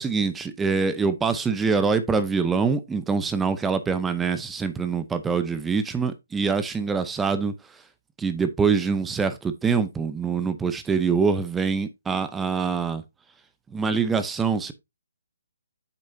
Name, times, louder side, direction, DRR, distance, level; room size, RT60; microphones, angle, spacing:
voice 1, 0.0-7.5 8.2-13.0 13.7-14.7, right 5 dB, 10° right, 0.7 m, -24 dB
8.4 x 6.4 x 2.7 m
hypercardioid pair, 150°, 0 cm